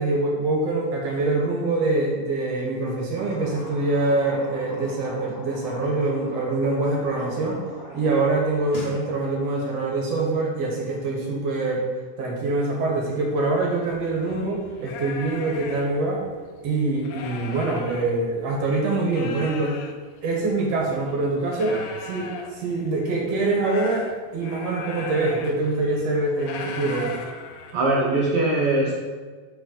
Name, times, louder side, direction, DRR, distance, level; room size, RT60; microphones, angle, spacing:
voice 1, 0.0-7.6 7.9-11.8 12.2-16.2 16.6-19.8 20.2-24.1 24.3-27.2, right 2 dB, 60° right, -1 dB, 2.0 m, -24 dB
sound 1, 3.1-8.1 8.5-9.0, left 1 dB, 55° left, 0.7 m, -40 dB
sound 2, 13.8-18.6 18.9-28.2, left 5 dB, 90° left, 1.5 m, -39 dB
voice 2, 27.7-29.0, right 2 dB, 90° right, -2 dB, 1.2 m, -22 dB
10.5 x 4.6 x 4.0 m, 1.5 s
omnidirectional pair, 3.9 m